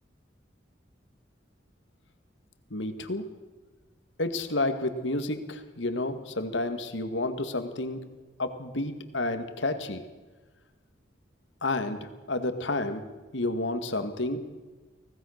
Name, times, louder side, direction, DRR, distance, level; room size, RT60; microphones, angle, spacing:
voice 1, 2.7-3.2 4.2-8.0 8.4-10.1 11.6-13.0 13.3-14.5, left 2 dB, 80° left, 9 dB, 2.0 m, -30 dB
25.0 x 17.0 x 6.6 m, 1.3 s
head